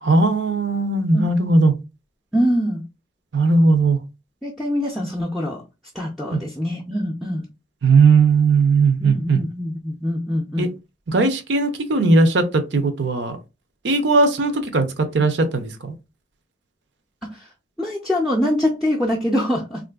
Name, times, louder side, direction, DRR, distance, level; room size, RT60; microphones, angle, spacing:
voice 1, 0.0-1.7 3.3-4.0 6.3-6.4 7.8-9.4 10.6-10.7 11.1-13.4 13.8-15.9, right 3 dB, 75° right, 0.6 m, -18 dB
voice 2, 2.3-2.8 4.4-5.6 5.9-7.4 9.0-10.7 17.2-17.5 17.8-19.8, equal, ahead, 0.4 m, -24 dB
3.6 x 2.5 x 2.3 m
head